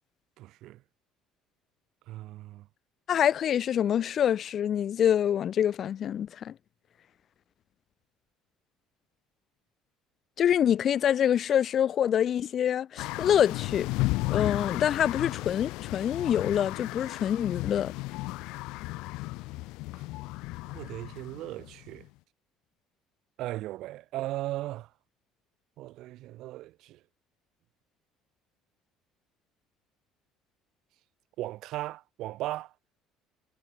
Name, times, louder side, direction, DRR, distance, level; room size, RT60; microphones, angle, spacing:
voice 1, 0.4-0.8 2.1-2.7 20.6-22.1 23.4-24.9 25.8-27.0 31.4-32.7, right 16 dB, 60° right, 2.1 m, -37 dB
voice 2, 3.1-6.5 10.4-13.9 14.3-17.9, left 9 dB, 35° left, 0.7 m, -26 dB
sound 1, 13.0-22.1, left 21 dB, 75° left, 1.9 m, -34 dB
cardioid pair, 160°, 0 cm